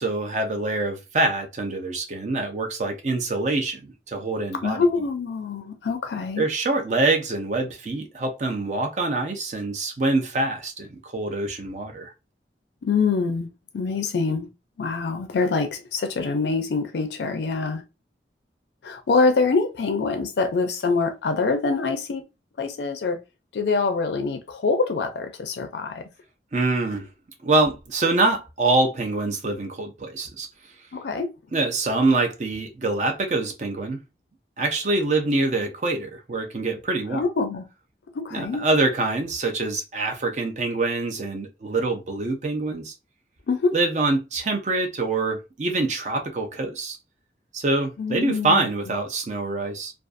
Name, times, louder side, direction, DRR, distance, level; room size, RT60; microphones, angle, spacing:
voice 1, 0.0-4.8 6.4-12.1 26.5-27.1 27.4-30.5 31.5-34.0 34.6-37.2 38.3-42.9 43.7-47.0 47.5-49.9, right 2 dB, 40° right, 0.5 m, -25 dB
voice 2, 4.6-6.5 12.8-13.5 13.7-14.5 14.8-17.8 18.8-22.2 22.6-23.2 23.5-26.0 30.9-31.3 37.1-37.6 38.1-38.6 43.5-43.8 48.0-48.7, left 4 dB, 75° left, 0.4 m, -25 dB
2.5 x 2.3 x 2.4 m
head